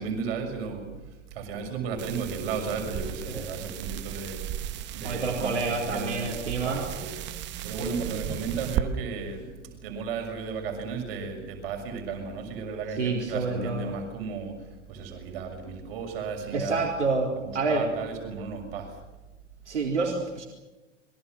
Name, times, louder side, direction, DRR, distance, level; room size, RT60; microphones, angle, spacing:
voice 1, 0.0-6.3 6.6-7.1 7.6-16.9 17.4-19.0, right 5 dB, 50° right, 4 dB, 6.6 m, -34 dB
sound 1, 2.0-8.8, right 11 dB, 30° right, 1.4 m, -35 dB
voice 2, 5.0-6.9 7.8-8.2 13.0-13.9 16.5-17.9 19.7-20.5, right 3 dB, 70° right, 0 dB, 4.1 m, -28 dB
28.0 x 23.0 x 6.6 m, 1.1 s
figure-of-eight pair, 90°, 36 cm